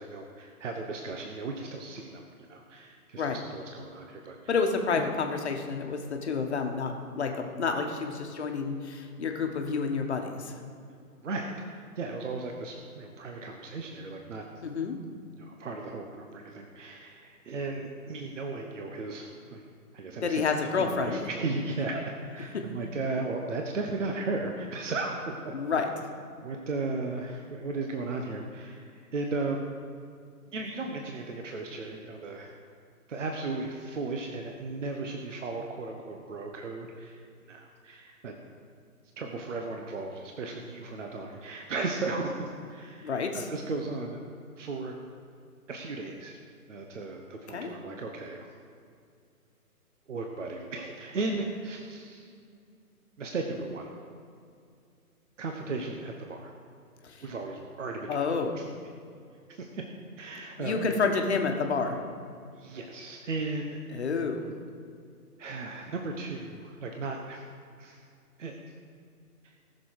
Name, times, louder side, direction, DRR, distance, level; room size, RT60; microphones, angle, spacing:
voice 1, 0.0-4.5 4.9-5.1 11.2-14.4 15.4-19.6 19.9-25.5 26.4-29.6 30.5-32.5 33.1-38.3 39.2-44.2 44.6-44.9 45.7-46.4 46.7-48.5 50.1-52.3 53.2-53.9 55.4-56.5 57.2-58.2 58.6-58.7 59.5-59.8 60.2-60.8 62.6-64.0 65.4-67.5 67.8-68.0 68.4-68.6 69.4-69.5, right 3 dB, 50° right, 2 dB, 1.2 m, -36 dB
voice 2, 4.5-10.6 14.6-15.0 20.2-21.3 22.5-22.6 25.5-25.9 43.0-43.4 47.5-47.7 57.0-57.2 58.1-58.5 60.6-62.0 63.9-64.4, left 4 dB, 45° left, 4 dB, 1.4 m, -29 dB
18.5 x 6.7 x 4.7 m, 2.3 s
hypercardioid pair, 165°, 46 cm